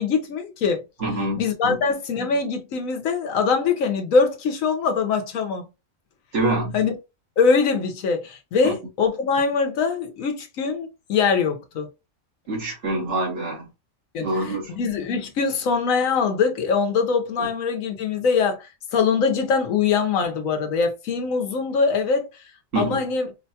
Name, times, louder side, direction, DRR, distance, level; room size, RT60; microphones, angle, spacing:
voice 1, 0.0-0.8 1.4-5.7 6.7-6.9 7.4-11.9 14.1-14.3 14.8-22.3 22.8-23.3, left 5 dB, 90° left, 1.2 m, -22 dB
voice 2, 1.0-1.8 6.3-6.8 8.6-8.8 12.5-13.7 14.2-14.7 17.4-17.5 22.7-23.0, right 2 dB, 60° right, 1.7 m, -26 dB
4.6 x 2.2 x 2.7 m
omnidirectional pair, 1.4 m